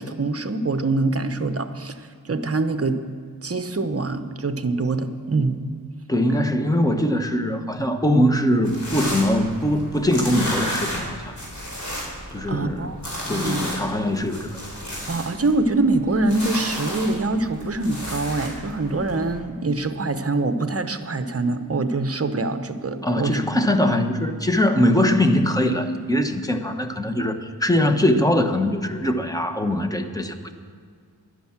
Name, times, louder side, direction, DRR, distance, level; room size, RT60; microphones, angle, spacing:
voice 1, 0.0-3.0 3.4-5.6 12.5-13.0 13.3-13.7 15.1-23.4, right 3 dB, 35° right, 9 dB, 0.9 m, -24 dB
voice 2, 6.1-11.3 12.3-12.9 13.3-14.6 23.0-30.5, left 1 dB, 10° left, 6 dB, 1.1 m, -22 dB
sound 1, 8.6-19.4, equal, 45° left, 4.4 m, -33 dB
11.5 x 10.5 x 7.3 m, 2.1 s
wide cardioid pair, 90°, 39 cm